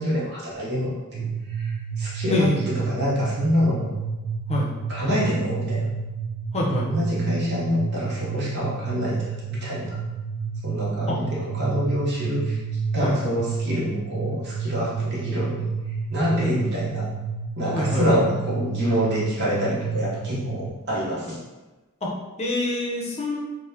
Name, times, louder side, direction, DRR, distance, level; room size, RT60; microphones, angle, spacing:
voice 1, 0.0-3.9 4.9-5.9 6.8-10.0 10.6-12.6 12.9-15.7 16.1-17.0 17.6-21.4, equal, 55° right, -7 dB, 0.9 m, -26 dB
sound 1, 1.1-20.7, right 5 dB, 85° right, 0.4 m, -30 dB
voice 2, 2.3-2.6 4.5-4.7 6.5-6.9 11.1-11.2 13.0-13.1 16.4-16.7 17.7-18.1 22.0-22.1 22.4-23.4, left 1 dB, 30° left, -2 dB, 0.6 m, -25 dB
4.0 x 2.1 x 2.7 m, 1.1 s
head